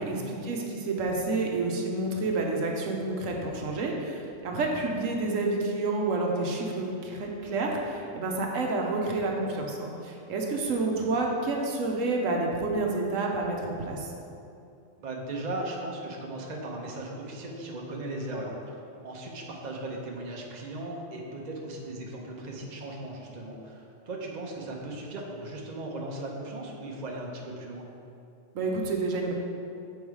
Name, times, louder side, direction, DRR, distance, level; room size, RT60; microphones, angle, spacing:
voice 1, 0.0-14.1 28.5-29.3, right 3 dB, 80° right, 0 dB, 1.2 m, -29 dB
voice 2, 15.0-27.9, right 2 dB, 40° right, -1 dB, 0.9 m, -37 dB
7.1 x 4.6 x 4.7 m, 2.6 s
omnidirectional pair, 1.3 m